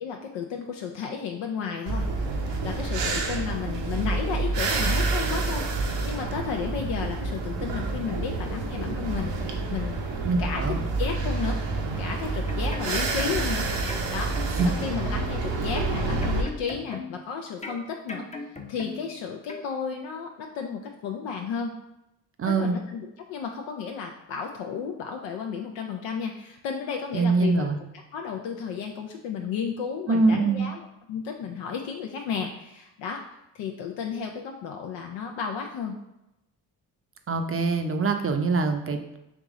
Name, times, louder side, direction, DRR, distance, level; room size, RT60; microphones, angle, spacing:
voice 1, 0.0-2.1 2.4-10.0 10.4-11.6 12.0-13.7 14.1-14.4 14.6-21.8 22.5-27.7 27.9-30.8 31.1-33.2 33.5-36.0, left 6 dB, 75° left, 2 dB, 0.6 m, -33 dB
sound 1, 1.9-16.4, right 3 dB, 70° right, 0.8 m, -28 dB
voice 2, 10.2-10.8 14.6-14.7 22.4-22.8 27.1-27.8 30.1-30.7 37.3-39.2, right 3 dB, 30° right, 6 dB, 0.6 m, -24 dB
sound 2, 12.3-13.5 13.9-15.4 15.7-17.3 17.6-19.1 19.5-19.7, left 3 dB, 15° left, 0.7 m, -39 dB
3.5 x 3.0 x 3.6 m, 0.88 s
supercardioid pair, 50°, 45 cm